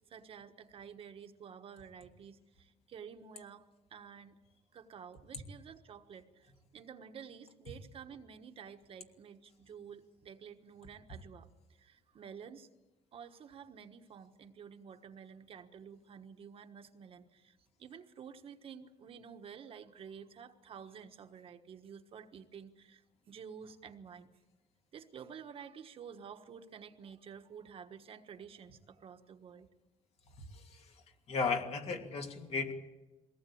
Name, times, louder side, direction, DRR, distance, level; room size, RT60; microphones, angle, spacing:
voice 1, 0.1-3.6 3.9-4.4 4.7-12.7 13.1-23.0 23.3-24.3 24.9-29.7, right 7 dB, 50° right, 7 dB, 1.4 m, -51 dB
voice 2, 30.5-30.9 31.3-32.7, left 4 dB, 55° left, 3 dB, 2.7 m, -35 dB
22.5 x 18.0 x 8.6 m, 1.1 s
cardioid pair, 160°, 13 cm